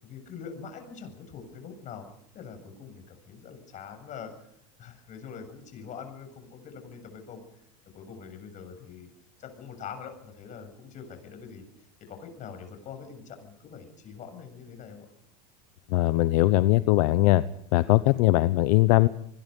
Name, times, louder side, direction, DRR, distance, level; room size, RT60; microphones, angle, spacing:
voice 1, 0.0-2.1 2.3-4.3 4.8-7.4 7.9-9.1 9.4-11.6 12.1-15.1, left 6 dB, 40° left, 7 dB, 7.4 m, -43 dB
voice 2, 15.9-17.4 17.7-19.1, left 18 dB, 70° left, 14 dB, 0.9 m, -20 dB
25.5 x 21.5 x 5.4 m, 0.70 s
supercardioid pair, 125°, 20 cm